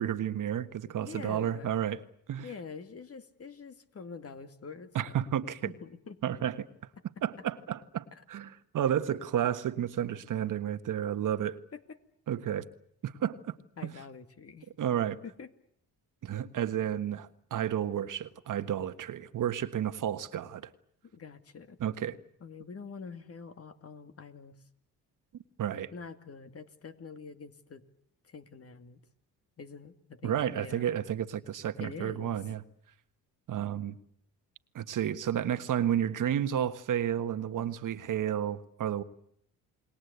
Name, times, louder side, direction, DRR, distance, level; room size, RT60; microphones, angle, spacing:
voice 1, 0.0-2.0 2.3-2.5 4.9-5.7 6.2-6.7 7.2-11.6 12.3-12.7 13.0-13.5 14.8-15.2 16.2-20.7 21.8-22.1 25.3-25.9 30.2-32.6 33.5-34.0 34.7-39.0, right 10 dB, 60° right, 1.5 m, -31 dB
voice 2, 1.0-1.7 2.4-5.2 5.6-6.2 8.1-8.2 11.7-12.0 13.8-14.7 15.2-15.5 21.1-21.8 22.4-24.6 25.9-27.8 28.2-29.0 29.6-30.9 31.8-32.3, left 5 dB, 40° left, 2.4 m, -45 dB
29.5 x 20.5 x 8.3 m
cardioid pair, 80°, 36 cm